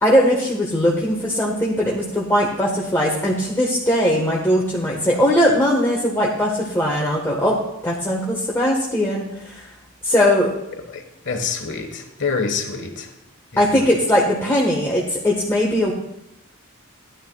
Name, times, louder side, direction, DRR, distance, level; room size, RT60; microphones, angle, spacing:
voice 1, 0.0-9.6 10.0-10.5 13.6-15.9, equal, 15° left, -3 dB, 1.3 m, -19 dB
voice 2, 10.9-13.1 13.5-13.8, left 5 dB, 60° left, 5 dB, 1.4 m, -27 dB
15.0 x 11.5 x 2.3 m, 0.83 s
head